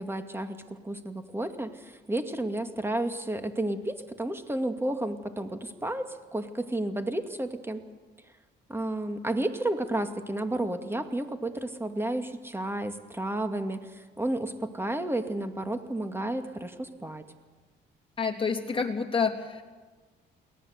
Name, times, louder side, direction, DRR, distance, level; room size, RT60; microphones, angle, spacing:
voice 1, 0.0-7.9 8.7-17.3, right 1 dB, 10° right, 7 dB, 2.2 m, -32 dB
voice 2, 18.2-19.6, left 5 dB, 25° left, 1 dB, 3.1 m, -28 dB
23.0 x 18.0 x 8.1 m, 1.4 s
cardioid pair, 90°, 20 cm